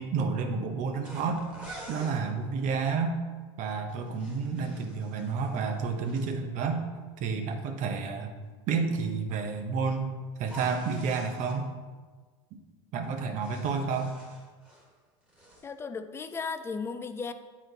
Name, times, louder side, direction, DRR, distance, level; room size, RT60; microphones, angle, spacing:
voice 1, 0.0-1.4 1.9-3.2 3.6-6.8 7.2-8.3 8.7-10.1 10.4-11.7 12.5-12.6 12.9-14.1, right 5 dB, 50° right, 5 dB, 0.9 m, -30 dB
sound 1, 1.0-2.2 3.9-6.3 10.4-11.6 13.0-14.9 15.2-15.7, right 1 dB, 5° right, 1.7 m, -48 dB
voice 2, 15.6-17.3, left 5 dB, 15° left, 9 dB, 0.4 m, -35 dB
7.8 x 4.3 x 4.0 m, 1.4 s
hypercardioid pair, 100°, 17 cm